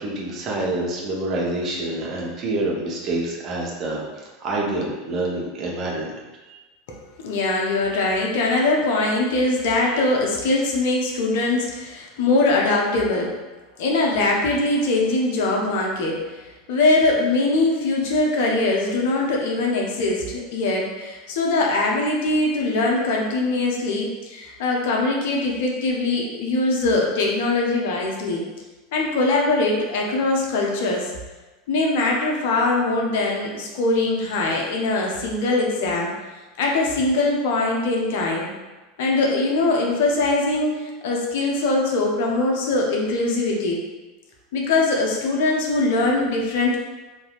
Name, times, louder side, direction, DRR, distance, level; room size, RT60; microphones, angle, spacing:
voice 1, 0.0-4.0 4.4-6.2 6.5-6.6 9.9-10.0, right 2 dB, 40° right, -3 dB, 0.9 m, -27 dB
voice 2, 7.2-13.3 13.8-16.2 16.7-28.4 28.9-31.1 31.7-36.1 36.6-38.5 39.0-43.8 44.5-46.8, left 2 dB, 60° left, -1 dB, 0.6 m, -22 dB
4.2 x 2.6 x 2.4 m, 1.2 s
figure-of-eight pair, 80°, 0 cm